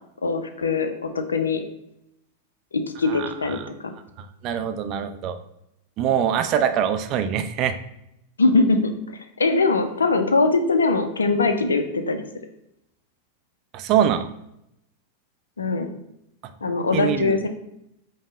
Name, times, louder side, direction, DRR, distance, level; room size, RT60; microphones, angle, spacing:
voice 1, 0.2-1.6 2.7-3.9 8.4-8.9 9.4-12.2 15.6-15.9 16.6-17.5, left 3 dB, 75° left, 7 dB, 0.4 m, -22 dB
voice 2, 3.1-3.6 4.2-5.4 6.0-7.8 13.7-14.3 16.9-17.4, right 9 dB, 35° right, 8 dB, 0.3 m, -24 dB
5.2 x 2.0 x 3.6 m, 0.80 s
figure-of-eight pair, 90°, 0 cm